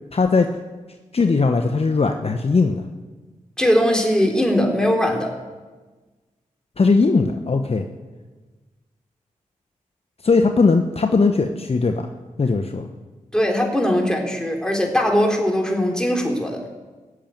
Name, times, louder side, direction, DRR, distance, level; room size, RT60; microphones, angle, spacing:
voice 1, 0.1-0.5 1.1-2.9 6.8-7.9 10.2-12.0 12.4-12.9, left 4 dB, 45° left, 5 dB, 1.0 m, -19 dB
voice 2, 3.6-5.3 13.3-16.6, equal, 5° left, 1 dB, 3.5 m, -20 dB
17.5 x 7.3 x 9.1 m, 1.3 s
cardioid pair, 50°, 14 cm